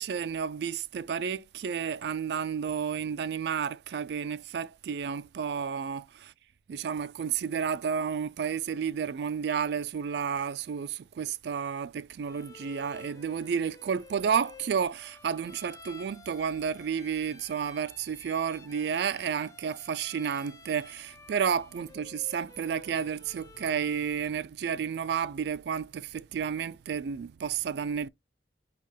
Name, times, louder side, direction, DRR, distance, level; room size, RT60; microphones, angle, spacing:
voice 1, 0.0-6.3 6.7-28.1, right 7 dB, 65° right, 0.3 m, -31 dB
Bowed string instrument, 12.2-24.4, left 4 dB, 20° left, 0.3 m, -52 dB
5.3 x 2.2 x 3.2 m
head